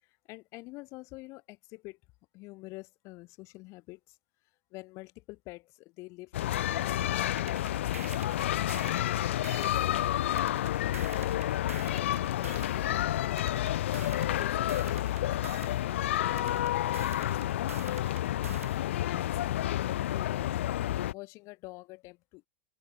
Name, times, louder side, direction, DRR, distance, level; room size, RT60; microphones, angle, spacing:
voice 1, 0.0-2.0 2.3-4.2 4.4-8.8 9.3-10.8 11.9-20.6 21.1-22.5, left 23 dB, 40° left, 2.9 m, -48 dB
sound 1, 6.3-21.1, left 13 dB, 60° left, 0.3 m, -30 dB
sound 2, 7.4-9.8 10.4-12.8 13.4-15.8 16.4-18.8, right 7 dB, 75° right, 2.0 m, -46 dB
open air
figure-of-eight pair, 90°, 8 cm